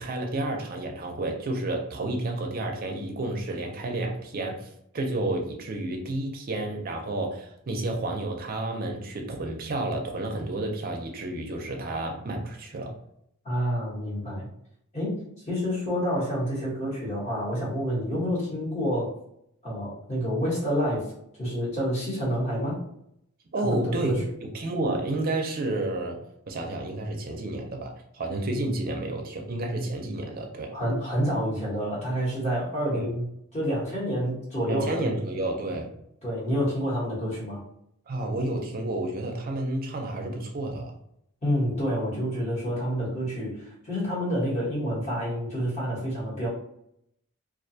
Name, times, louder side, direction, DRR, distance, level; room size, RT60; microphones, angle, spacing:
voice 1, 0.0-12.9 23.5-24.2 24.5-30.7 32.8-33.1 34.7-35.9 38.1-40.9, right 2 dB, 40° right, 2 dB, 0.4 m, -31 dB
voice 2, 13.4-14.5 14.9-19.1 19.6-21.0 21.4-22.8 23.6-24.2 30.7-33.3 33.5-35.1 36.2-37.6 41.4-46.5, equal, 30° left, -7 dB, 1.0 m, -28 dB
2.3 x 2.2 x 2.6 m, 0.74 s
head